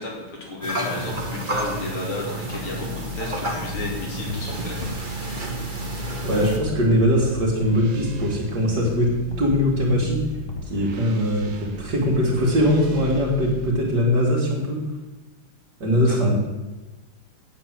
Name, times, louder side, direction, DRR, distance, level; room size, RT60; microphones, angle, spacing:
voice 1, 0.0-4.8 16.1-16.2, left 2 dB, 80° left, -2 dB, 3.8 m, -33 dB
sound 1, 0.6-6.6, right 1 dB, 25° right, 1.6 m, -31 dB
sound 2, 0.9-13.7, left 1 dB, 85° right, 2.1 m, -37 dB
sound 3, 3.7-4.5 4.8-5.6 5.9-6.2 6.5-6.7 7.1-7.3 7.6-7.9 8.2-8.5 8.8-9.5 9.9-10.2 10.5-10.8, left 3 dB, 30° left, 1.4 m, -36 dB
voice 2, 6.2-10.2 10.7-11.5 11.8-14.8 15.8-16.4, equal, 55° right, -7 dB, 2.9 m, -21 dB
9.1 x 7.8 x 7.7 m, 1.1 s
omnidirectional pair, 2.3 m